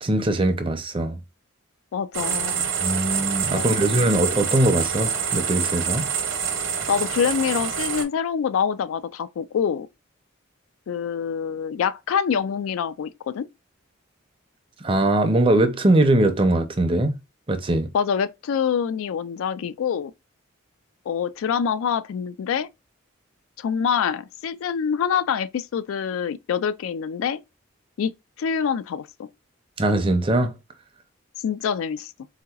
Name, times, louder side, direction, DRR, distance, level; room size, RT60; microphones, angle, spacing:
voice 1, 0.0-1.2 2.8-6.1 14.8-17.1 17.5-17.9 29.8-30.5, right 1 dB, 25° right, 0.5 m, -21 dB
voice 2, 1.9-2.7 3.5-4.1 6.9-9.9 10.9-13.5 17.9-20.1 21.1-22.7 23.6-27.4 28.0-28.1 28.4-29.3 31.4-32.1, left 7 dB, 75° left, 0.3 m, -25 dB
sound 1, 2.1-8.0, right 7 dB, 65° right, 0.8 m, -26 dB
3.8 x 2.8 x 2.3 m
head